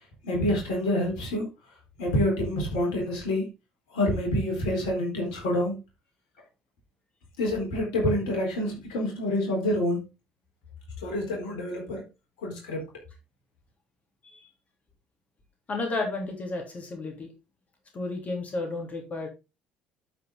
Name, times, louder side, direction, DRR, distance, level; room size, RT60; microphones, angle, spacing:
voice 1, 0.2-1.5 2.0-3.5 3.9-5.8 7.4-10.0 11.0-12.0 12.4-12.9, left 1 dB, 70° left, 4.3 m, -27 dB
voice 2, 15.7-17.3 17.9-19.3, left 2 dB, 35° left, 3.3 m, -32 dB
12.0 x 5.5 x 3.7 m
hypercardioid pair, 55°, 4 cm